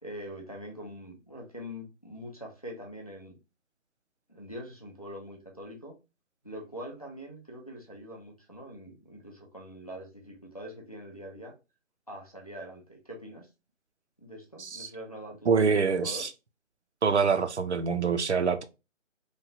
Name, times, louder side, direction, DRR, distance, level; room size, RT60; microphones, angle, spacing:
voice 1, 0.0-3.4 4.3-6.0 6.4-11.5 12.1-13.5 14.2-16.2, equal, 30° left, 0.5 m, -43 dB
voice 2, 14.6-14.9 15.5-16.3 17.0-18.6, right 5 dB, 60° right, 0.5 m, -25 dB
3.0 x 2.2 x 2.6 m
figure-of-eight pair, 165°, 39 cm